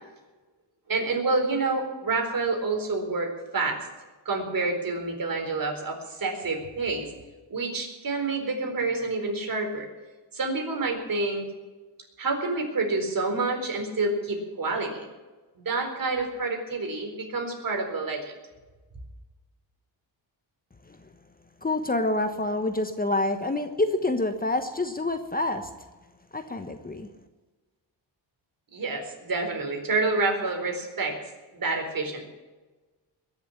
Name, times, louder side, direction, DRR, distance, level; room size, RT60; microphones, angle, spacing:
voice 1, 0.9-3.9 4.2-7.1 7.5-9.9 10.3-11.5 12.2-15.1 15.6-18.4 28.7-31.2 31.5-32.2, right 3 dB, 50° right, 3 dB, 4.3 m, -28 dB
voice 2, 21.6-25.7 26.3-27.1, left 2 dB, 20° left, 7 dB, 1.2 m, -27 dB
21.5 x 7.3 x 8.6 m, 1.2 s
cardioid pair, 105°, 43 cm